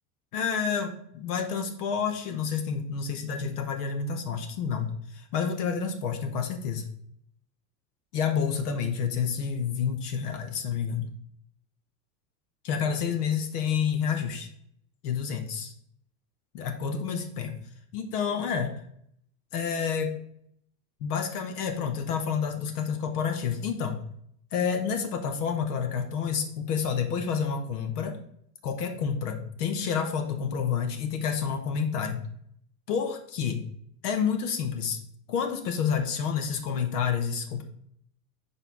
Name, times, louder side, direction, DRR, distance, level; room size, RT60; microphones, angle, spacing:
voice 1, 0.3-6.9 8.1-11.1 12.6-14.5 15.0-15.7 16.5-17.6 17.9-18.8 19.5-20.1 21.0-24.0 24.5-28.2 28.6-32.3 32.9-33.6 34.0-35.0 35.3-37.6, left 6 dB, 75° left, 5 dB, 1.3 m, -29 dB
5.5 x 4.5 x 5.4 m, 0.68 s
supercardioid pair, 115°, 46 cm